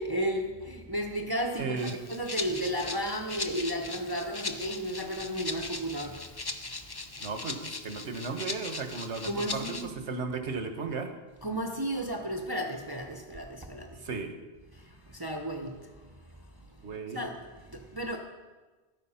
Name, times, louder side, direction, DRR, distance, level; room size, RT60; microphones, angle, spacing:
voice 1, 0.0-7.3 9.3-9.9 11.4-14.1 14.7-17.4 17.6-18.2, equal, 20° right, 2 dB, 0.9 m, -34 dB
voice 2, 1.6-1.9 7.2-11.1 14.0-14.3 16.8-17.3, right 4 dB, 80° right, 6 dB, 1.5 m, -35 dB
Rattle (instrument), 1.8-9.9, left 3 dB, 25° left, 0.6 m, -39 dB
13.5 x 9.5 x 5.7 m, 1.3 s
omnidirectional pair, 1.2 m